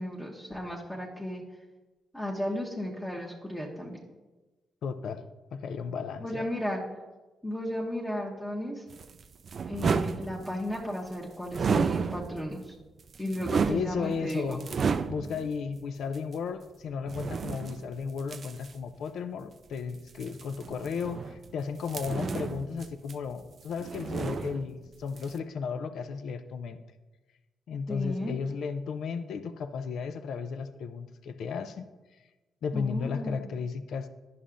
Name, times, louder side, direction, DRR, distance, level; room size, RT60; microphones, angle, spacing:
voice 1, 0.0-1.4 2.1-4.0 6.2-6.8 7.4-8.8 9.7-12.7 13.2-14.6 22.1-22.4 27.9-28.4 32.7-33.5, left 1 dB, 10° left, -3 dB, 1.0 m, -34 dB
voice 2, 4.8-5.2 5.5-6.5 13.7-14.7 15.1-26.8 27.7-31.9 32.6-34.1, left 5 dB, 75° left, 10 dB, 0.4 m, -34 dB
sound 1, 8.9-10.8 11.5-12.6 13.0-15.5 16.1-16.2 17.1-18.7 20.1-21.5 21.8-23.5 23.7-24.9 25.2-25.4, right 5 dB, 55° right, 0.3 m, -32 dB
11.0 x 5.6 x 2.5 m, 1.2 s
supercardioid pair, 65°, 0 cm